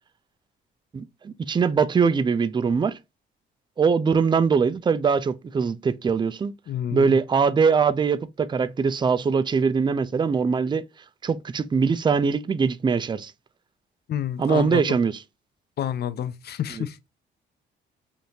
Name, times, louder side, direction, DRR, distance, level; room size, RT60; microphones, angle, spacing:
voice 1, 0.9-3.0 3.8-6.5 6.9-10.8 11.2-13.3 14.4-15.2 16.8-16.9, right 5 dB, 25° right, 0.4 m, -22 dB
voice 2, 6.7-7.2 14.1-15.0 15.8-17.0, left 10 dB, 55° left, 0.5 m, -29 dB
5.1 x 2.6 x 2.8 m
cardioid pair, 90°, 20 cm